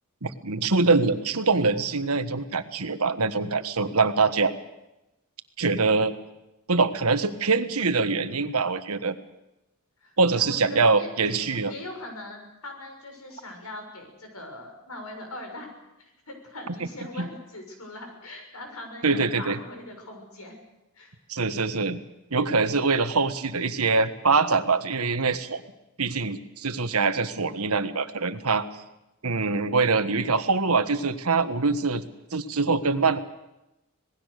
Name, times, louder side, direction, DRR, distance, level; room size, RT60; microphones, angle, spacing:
voice 1, 0.2-4.5 5.6-6.1 6.7-9.1 10.2-11.7 17.2-17.3 19.0-19.6 21.3-22.0 22.3-25.6 26.0-28.7 29.2-33.2, right 4 dB, 85° right, 10 dB, 1.5 m, -24 dB
voice 2, 10.0-15.7 16.0-20.5 20.9-21.2, left 2 dB, 85° left, 4 dB, 6.7 m, -41 dB
26.5 x 19.0 x 6.7 m, 0.92 s
head